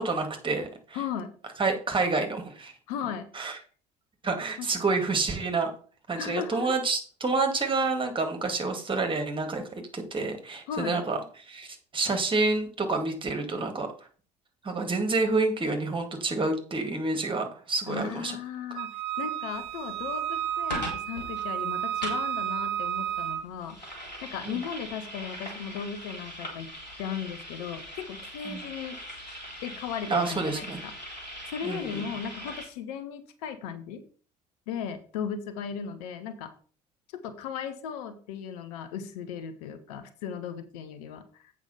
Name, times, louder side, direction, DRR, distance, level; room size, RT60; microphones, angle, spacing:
voice 1, 0.0-1.0 1.6-2.7 3.3-3.6 4.2-5.7 6.1-9.6 9.9-13.9 14.6-18.4 24.5-24.6 28.5-28.6 30.1-30.8 31.6-32.0, right 3 dB, 25° right, 5 dB, 2.1 m, -28 dB
voice 2, 0.9-1.3 2.9-3.3 4.6-5.0 6.2-6.8 10.7-11.0 17.9-23.9 24.2-26.7 27.0-29.0 29.6-30.9 31.5-34.0 34.7-36.5 37.1-41.5, left 7 dB, 65° left, 10 dB, 1.1 m, -36 dB
Wind instrument woodwind instrument, 18.8-23.5, right 11 dB, 55° right, 0.8 m, -32 dB
sound 1, 19.5-32.7, equal, 85° left, 2.3 m, -41 dB
8.1 x 5.1 x 5.6 m, 0.41 s
figure-of-eight pair, 60°, 21 cm